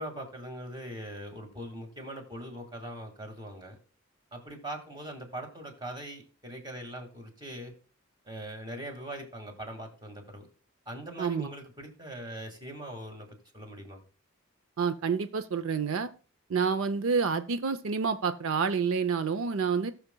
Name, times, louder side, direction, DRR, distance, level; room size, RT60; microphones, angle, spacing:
voice 1, 0.0-3.8 4.3-7.7 8.3-10.5 10.9-14.0, right 1 dB, 20° right, 4 dB, 1.9 m, -41 dB
voice 2, 11.2-11.5 14.8-16.1 16.5-19.9, right 5 dB, 75° right, 11 dB, 0.5 m, -28 dB
18.5 x 6.5 x 2.2 m, 0.37 s
head